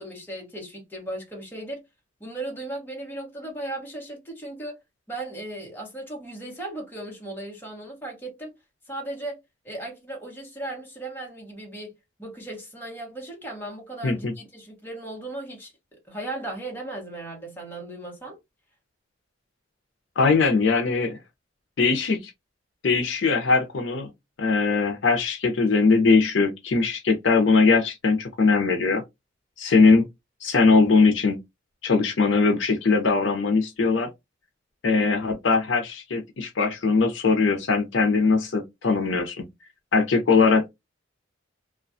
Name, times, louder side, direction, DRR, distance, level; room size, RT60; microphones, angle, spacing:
voice 1, 0.0-1.8 2.2-4.8 5.1-8.5 8.9-18.4, right 2 dB, 10° left, 0.9 m, -37 dB
voice 2, 20.2-21.2 21.8-22.3 22.8-24.1 24.4-29.0 29.6-30.1 30.4-31.4 31.8-34.1 34.8-39.4 39.9-40.7, left 4 dB, 65° left, 0.5 m, -21 dB
2.4 x 2.2 x 2.5 m
head